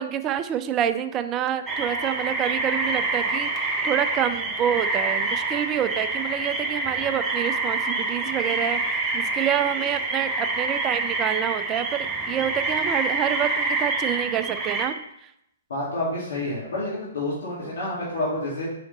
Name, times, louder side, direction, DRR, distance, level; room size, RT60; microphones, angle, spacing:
voice 1, 0.0-8.8 9.1-12.0 12.2-15.0, right 10 dB, 25° right, 11 dB, 0.3 m, -27 dB
sound 1, 1.7-14.9, right 3 dB, 5° right, 0.8 m, -27 dB
voice 2, 15.7-18.7, left 1 dB, 55° left, -7 dB, 2.2 m, -29 dB
5.1 x 4.9 x 3.9 m, 0.80 s
figure-of-eight pair, 115°, 0 cm